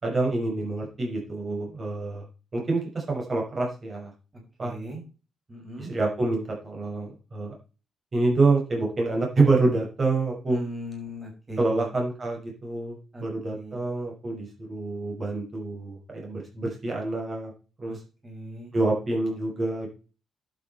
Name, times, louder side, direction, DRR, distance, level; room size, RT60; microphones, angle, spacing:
voice 1, 0.0-2.2 2.5-4.1 4.6-4.7 5.8-7.5 8.1-10.6 11.6-17.5 17.8-18.0 18.7-19.9, right 3 dB, 35° right, 0 dB, 5.9 m, -27 dB
voice 2, 4.6-5.0 5.5-5.9 10.5-11.9 13.1-13.8 17.9-18.0 18.2-18.7, equal, 15° right, 0 dB, 6.2 m, -38 dB
11.5 x 7.7 x 4.4 m, 0.34 s
cardioid pair, 90°, 0 cm